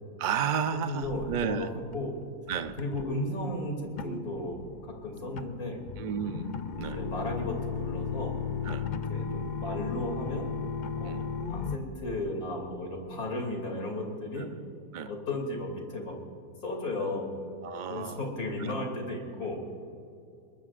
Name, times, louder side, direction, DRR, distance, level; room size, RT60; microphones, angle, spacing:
voice 1, 0.2-1.7 2.5-2.8 6.0-7.0 8.6-8.9 11.0-11.2 14.4-14.5 14.9-15.1 17.6-18.2 18.6-18.8, right 7 dB, 85° right, 9 dB, 0.4 m, -32 dB
voice 2, 0.9-2.2 2.8-3.7 4.0-4.6 4.8-5.8 6.8-8.4 8.8-10.5 11.0-11.2 11.5-14.5 15.1-16.1 16.6-17.3 17.9-19.6, left 1 dB, 65° left, 1 dB, 3.3 m, -34 dB
sound 1, 1.0-1.6 1.9-2.2 2.5-3.1 4.0-11.8, left 6 dB, 85° left, 0.4 m, -35 dB
23.0 x 20.5 x 2.5 m, 2.6 s
omnidirectional pair, 1.7 m